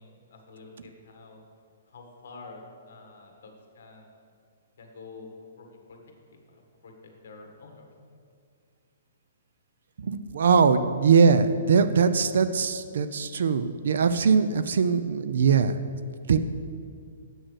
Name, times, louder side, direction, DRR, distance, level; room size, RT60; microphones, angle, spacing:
voice 1, 0.0-1.4 1.9-4.1 4.8-5.3 5.6-6.0 6.5-7.9, left 3 dB, 50° left, 2 dB, 1.5 m, -48 dB
voice 2, 10.0-15.8 16.3-16.4, right 5 dB, 55° right, 12 dB, 0.4 m, -21 dB
7.9 x 6.4 x 6.3 m, 2.3 s
hypercardioid pair, 180°, 0 cm